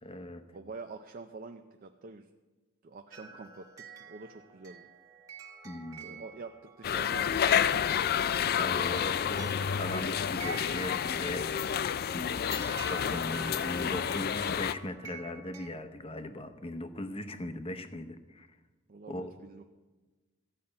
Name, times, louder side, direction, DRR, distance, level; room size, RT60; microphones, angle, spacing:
voice 1, 0.0-0.4 5.6-6.2 8.6-18.5 19.1-19.3, left 1 dB, 25° left, 9 dB, 0.8 m, -39 dB
voice 2, 0.5-2.3 2.8-4.9 6.0-8.7 12.0-12.4 17.0-17.3 18.9-19.7, right 3 dB, 45° right, 6 dB, 0.5 m, -47 dB
sound 1, 3.1-15.7, right 3 dB, 15° right, 1.2 m, -48 dB
sound 2, 6.8-14.7, left 8 dB, 45° left, 0.3 m, -30 dB
14.5 x 5.6 x 8.6 m, 1.2 s
head